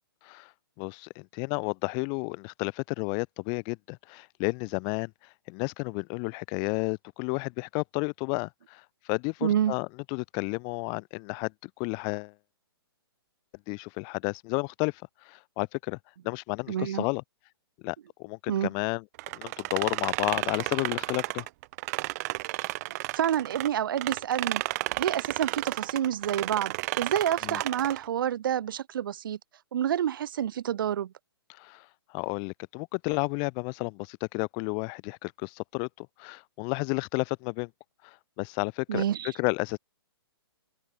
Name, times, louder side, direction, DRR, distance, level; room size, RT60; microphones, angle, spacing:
voice 1, 0.8-5.1 5.5-8.8 9.1-12.3 13.7-14.9 15.2-16.0 16.2-17.2 17.8-19.0 19.3-21.5 27.4-27.6 31.6-31.8 32.1-37.7 38.0-39.8, left 38 dB, 35° left, 4.6 m, -32 dB
voice 2, 9.4-9.7 16.7-17.0 18.5-18.7 22.9-24.6 25.0-29.4 29.7-31.1 38.9-39.3, right 10 dB, 55° right, 2.6 m, -28 dB
sound 1, 19.2-23.7 24.0-28.1, right 20 dB, 40° right, 4.0 m, -32 dB
hypercardioid pair, 130°, 13 cm